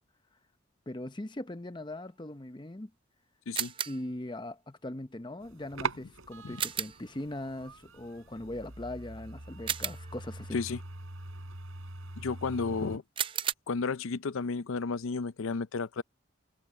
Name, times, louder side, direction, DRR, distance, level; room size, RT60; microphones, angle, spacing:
voice 1, 0.9-2.9 3.9-10.6, left 1 dB, 20° left, 0.8 m, -40 dB
sound 1, 3.5-4.1 6.6-7.1 9.7-10.3 13.2-13.5, right 8 dB, 25° right, 0.5 m, -33 dB
sound 2, 5.4-13.0, right 3 dB, 90° right, 3.9 m, -42 dB
voice 2, 12.2-13.0 13.7-16.0, left 4 dB, 75° left, 0.5 m, -32 dB
head